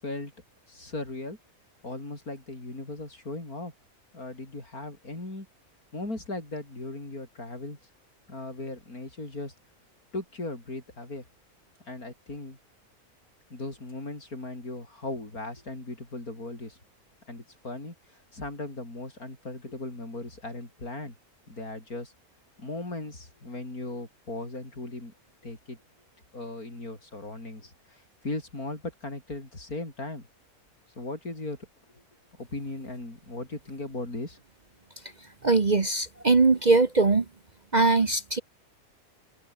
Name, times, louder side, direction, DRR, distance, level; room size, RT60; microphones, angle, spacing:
voice 1, 0.7-1.4 1.8-3.7 4.1-5.5 5.9-7.8 8.3-9.5 10.1-11.3 11.9-12.6 13.5-16.8 17.3-21.2 21.5-22.1 22.6-25.1 25.4-25.8 26.3-30.3 31.0-31.6 31.9-32.0 32.4-34.4, left 2 dB, 75° left, 7.0 m, -37 dB
voice 2, 35.4-37.2 37.7-38.4, right 3 dB, 30° right, 1.1 m, -21 dB
omnidirectional pair, 1.6 m